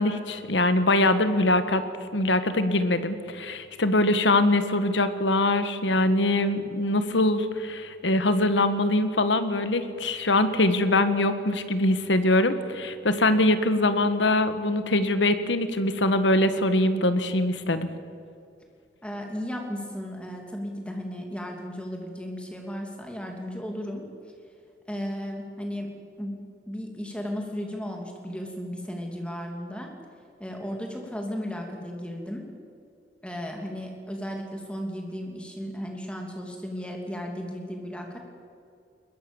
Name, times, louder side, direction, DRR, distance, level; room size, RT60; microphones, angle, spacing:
voice 1, 0.0-1.8 2.1-17.9, left 2 dB, 90° left, 10 dB, 1.6 m, -23 dB
voice 2, 19.0-24.1 24.9-26.4 26.7-29.9 30.4-32.5 33.2-38.2, equal, 5° left, 2 dB, 2.9 m, -35 dB
21.5 x 21.0 x 7.2 m, 2.4 s
head